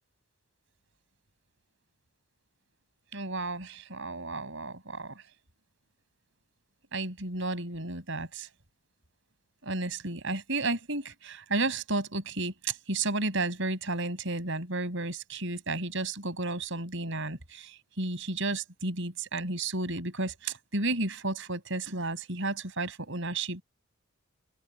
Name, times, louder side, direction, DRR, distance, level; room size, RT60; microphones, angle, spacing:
voice 1, 3.1-5.2 6.9-8.5 9.6-23.6, right 2 dB, 55° right, 6.1 m, -32 dB
head